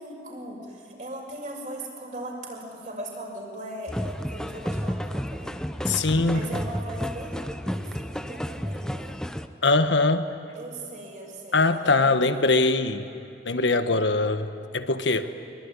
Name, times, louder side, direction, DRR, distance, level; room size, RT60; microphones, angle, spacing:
voice 1, 0.0-5.6 6.3-9.1 10.5-12.3 13.6-13.9, right 1 dB, 45° right, -1 dB, 5.9 m, -39 dB
sound 1, 3.9-9.5, equal, 5° left, 0.7 m, -31 dB
voice 2, 5.9-6.5 9.6-10.3 11.5-13.1 13.4-15.3, left 3 dB, 85° left, 9 dB, 1.3 m, -22 dB
24.5 x 23.0 x 9.7 m, 2.6 s
head